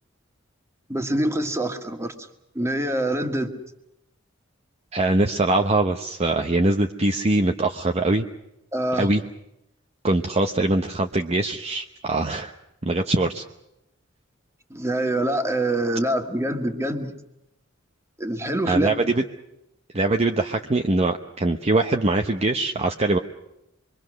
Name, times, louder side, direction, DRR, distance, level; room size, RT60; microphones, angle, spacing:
voice 1, 0.9-2.1 2.5-3.5 8.7-9.1 14.7-17.1 18.2-18.9, right 1 dB, 15° right, 5 dB, 1.8 m, -25 dB
voice 2, 4.9-8.3 9.0-9.2 10.0-12.5 12.8-13.4 18.7-19.2 19.9-23.2, right 2 dB, 30° right, 4 dB, 0.8 m, -22 dB
26.0 x 23.0 x 6.4 m, 0.86 s
head